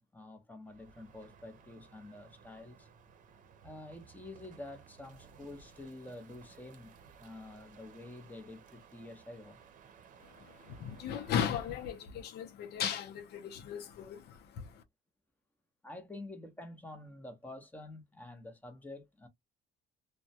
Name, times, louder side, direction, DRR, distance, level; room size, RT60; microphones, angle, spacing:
voice 1, 0.0-2.9 3.6-9.6 15.8-19.3, left 2 dB, 10° left, 0.8 m, -48 dB
Crow, 0.6-12.1, right 6 dB, 50° right, 0.7 m, -58 dB
voice 2, 10.2-14.8, left 8 dB, 70° left, 0.6 m, -37 dB
2.2 x 2.1 x 2.7 m
cardioid pair, 110°, 17 cm